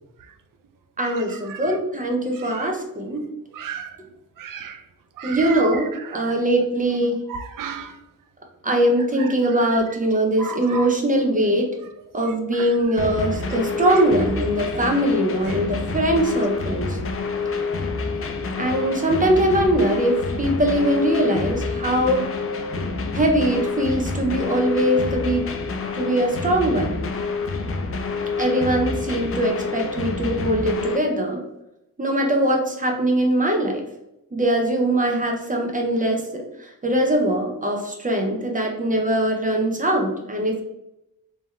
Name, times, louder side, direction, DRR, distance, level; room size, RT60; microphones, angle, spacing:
voice 1, 1.0-3.2 5.2-7.2 8.6-11.7 12.1-17.0 18.6-22.2 23.1-25.5 25.9-27.0 28.4-31.4 32.0-33.8 34.3-40.6, right 1 dB, 20° right, 2 dB, 0.7 m, -21 dB
voice 2, 2.4-2.7 3.5-3.9 4.4-4.8 5.2-5.6 7.3-7.9 10.4-10.9 12.6-12.7, right 6 dB, 65° right, 8 dB, 0.5 m, -33 dB
sound 1, 13.0-31.0, left 4 dB, 40° left, 0.5 m, -27 dB
3.7 x 2.9 x 3.3 m, 0.88 s
wide cardioid pair, 135°, 35 cm